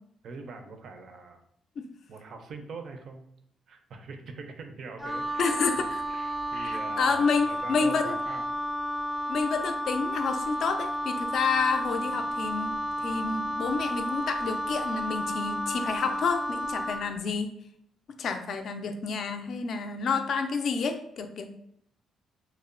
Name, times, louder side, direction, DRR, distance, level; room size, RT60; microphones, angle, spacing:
voice 1, 0.2-1.4 2.1-3.3 3.7-8.4 17.0-17.3, right 4 dB, 60° right, 5 dB, 0.4 m, -43 dB
Wind instrument woodwind instrument, 5.0-17.1, equal, ahead, 0.4 m, -32 dB
voice 2, 5.4-6.0 6.5-8.2 9.3-17.5 18.2-21.5, left 5 dB, 60° left, 7 dB, 0.3 m, -29 dB
2.8 x 2.0 x 2.4 m, 0.71 s
cardioid pair, 90°, 0 cm